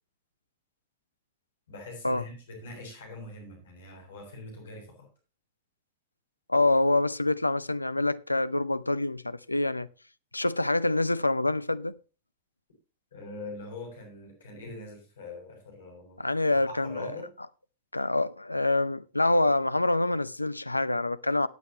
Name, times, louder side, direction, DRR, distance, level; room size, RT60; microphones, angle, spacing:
voice 1, 1.7-5.1 13.1-17.3, left 2 dB, 65° left, 6.7 m, -43 dB
voice 2, 6.5-9.9 10.3-12.0 16.2-17.1 17.9-21.5, left 2 dB, 85° left, 0.5 m, -26 dB
18.5 x 7.9 x 3.0 m
figure-of-eight pair, 90°, 0 cm